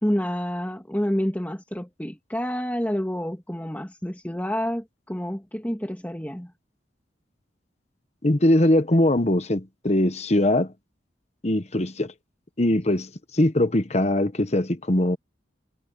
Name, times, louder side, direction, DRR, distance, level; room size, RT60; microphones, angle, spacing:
voice 1, 0.0-6.5, equal, 10° left, 2.3 m, -28 dB
voice 2, 8.2-10.7 11.4-12.1 12.6-15.2, left 1 dB, 35° left, 1.2 m, -21 dB
head